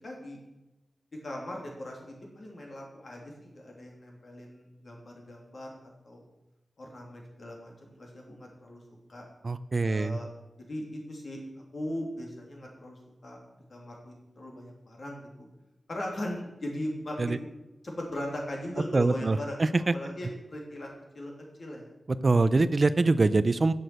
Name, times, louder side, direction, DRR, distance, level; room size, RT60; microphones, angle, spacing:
voice 1, 0.0-0.4 1.2-6.3 6.8-8.8 9.1-9.2 9.9-10.3 10.7-11.4 11.7-13.4 13.7-15.5 15.9-17.5 17.8-19.6 19.9-21.3 21.6-21.9, left 1 dB, 55° left, 0 dB, 2.8 m, -39 dB
voice 2, 9.4-10.2 17.2-17.4 18.9-19.9 22.1-23.7, right 3 dB, 45° right, 14 dB, 0.4 m, -24 dB
7.8 x 7.0 x 7.8 m, 1.0 s
wide cardioid pair, 90°, 0 cm